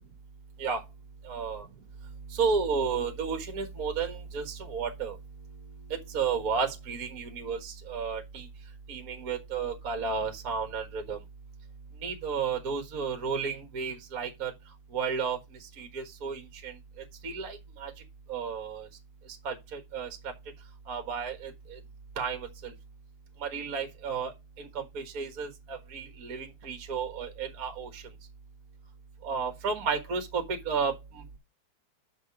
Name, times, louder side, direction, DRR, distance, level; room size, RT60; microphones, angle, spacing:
voice 1, 1.2-1.6 2.3-5.2 5.9-8.5 8.9-11.2 12.0-14.5 14.9-15.4 15.8-16.8 17.2-17.9 18.3-18.9 19.4-20.3 20.9-21.8 22.2-22.7 23.4-24.3 24.6-28.0 29.2-31.4, right 5 dB, 40° right, 1.4 m, -32 dB
7.8 x 5.6 x 4.7 m
omnidirectional pair, 3.4 m